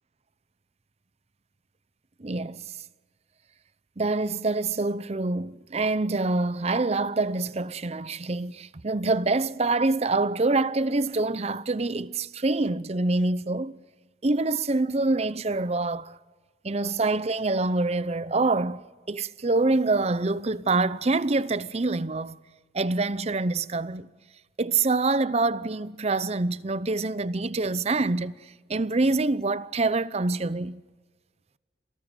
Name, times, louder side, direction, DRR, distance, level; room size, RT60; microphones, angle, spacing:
voice 1, 2.2-2.8 4.0-13.8 14.2-16.2 16.6-22.4 22.7-24.1 24.6-30.8, right 3 dB, 35° right, 0.7 m, -26 dB
28.5 x 18.0 x 8.1 m
head